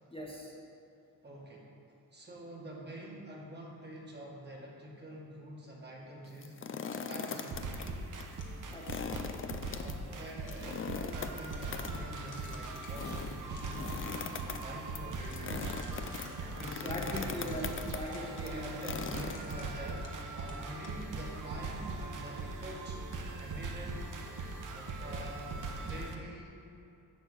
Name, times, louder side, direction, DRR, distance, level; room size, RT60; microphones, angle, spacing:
voice 1, 0.1-0.5 8.7-9.5 16.8-18.7, equal, 15° left, -4 dB, 1.3 m, -41 dB
voice 2, 1.2-1.7 2.1-6.6 7.1-7.8 9.8-13.9 14.3-16.1 16.5-17.7 18.2-20.1 20.3-23.0 23.4-24.0 24.7-25.5 25.8-26.7, right 1 dB, 30° right, -3 dB, 1.9 m, -46 dB
sound 1, 6.3-7.9 8.2-8.3 8.7-19.9, left 6 dB, 35° left, 0.5 m, -41 dB
sound 2, 6.8-9.2 10.0-10.7 11.1-11.2 11.4-13.1 13.4-14.6 15.1-16.4 17.1-20.2 20.5-21.0, left 3 dB, 55° left, 1.5 m, -54 dB
sound 3, 7.5-26.2, right 3 dB, 60° right, 1.0 m, -40 dB
11.5 x 4.4 x 8.0 m, 2.8 s
wide cardioid pair, 130°, 36 cm